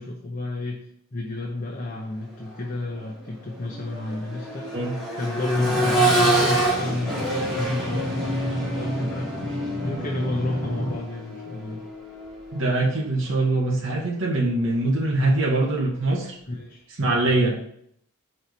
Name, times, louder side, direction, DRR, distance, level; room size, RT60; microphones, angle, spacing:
voice 1, 0.0-4.7 5.1-9.3 9.8-11.8 16.5-16.9, left 2 dB, 35° left, 0 dB, 0.7 m, -31 dB
Accelerating revving vroom, 2.3-2.5 2.9-12.8 14.5-14.6, right 1 dB, ahead, 1.8 m, -27 dB
sound 1, 5.5-10.9, equal, 80° right, 1.5 m, -30 dB
voice 2, 12.5-16.4 17.0-17.6, right 2 dB, 55° right, -2 dB, 0.9 m, -23 dB
4.7 x 4.3 x 5.2 m, 0.69 s
head